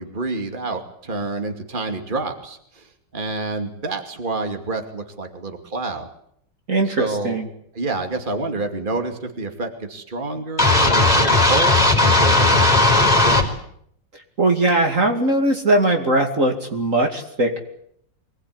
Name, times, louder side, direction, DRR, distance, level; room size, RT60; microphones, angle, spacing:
voice 1, 0.0-2.8 3.1-6.1 6.9-7.4 7.7-13.5, right 3 dB, 25° right, 5 dB, 2.8 m, -28 dB
voice 2, 6.7-7.5 14.4-17.6, right 2 dB, 45° right, 3 dB, 2.8 m, -20 dB
sound 1, 10.6-13.4, left 2 dB, 20° left, 4.6 m, -16 dB
25.0 x 19.5 x 9.7 m, 0.69 s
omnidirectional pair, 2.0 m